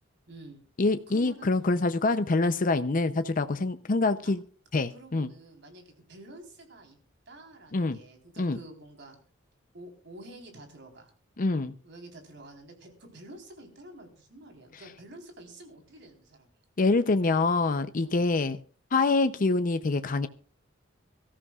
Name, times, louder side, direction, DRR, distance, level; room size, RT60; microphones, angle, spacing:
voice 1, 0.3-0.6 1.1-1.5 4.2-4.3 4.7-7.0 7.3-9.2 9.7-11.1 11.8-16.5 18.0-18.3, right 1 dB, 65° right, 3.9 m, -49 dB
voice 2, 0.8-4.4 4.7-5.3 7.7-8.0 8.4-8.6 11.4-11.7 16.8-18.6 18.9-20.3, left 3 dB, 45° left, 0.6 m, -25 dB
24.0 x 14.0 x 2.4 m
head